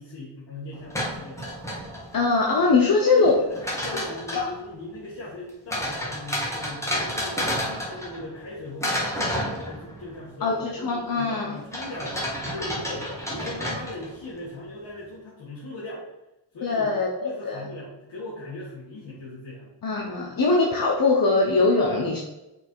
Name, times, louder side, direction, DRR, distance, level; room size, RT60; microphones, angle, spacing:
voice 1, 0.0-1.5 2.6-3.6 3.8-16.0 16.5-16.9 17.2-19.7 20.2-20.4, left 1 dB, 65° left, -7 dB, 2.1 m, -39 dB
sound 1, 0.7-2.3 3.3-4.6 5.7-8.5 8.8-10.2 11.7-14.3, equal, 5° left, 2.0 m, -30 dB
voice 2, 2.1-3.3 10.4-11.6 16.6-17.6 19.8-22.2, left 3 dB, 50° left, -2 dB, 1.1 m, -22 dB
5.8 x 4.7 x 4.7 m, 0.95 s
cardioid pair, 85°, 45 cm